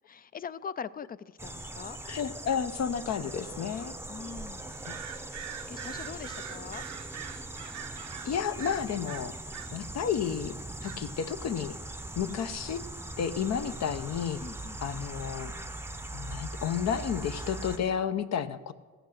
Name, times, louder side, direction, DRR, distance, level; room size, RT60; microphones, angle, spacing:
voice 1, 0.1-2.0 4.1-5.0 5.7-6.8 12.3-12.4 14.4-14.8, left 6 dB, 30° left, 16 dB, 0.4 m, -42 dB
sound 1, 1.4-17.8, right 2 dB, 10° right, 0.6 m, -41 dB
voice 2, 2.1-4.0 4.9-5.0 8.2-9.4 9.7-10.5 10.8-11.8 12.2-12.8 13.2-14.4 14.8-15.5 16.1-18.7, left 8 dB, 60° left, 11 dB, 0.7 m, -31 dB
sound 2, 4.7-9.8 10.8-11.3 13.8-13.9, right 11 dB, 70° right, 0.6 m, -44 dB
14.5 x 8.1 x 6.4 m, 1.5 s
cardioid pair, 90°, 30 cm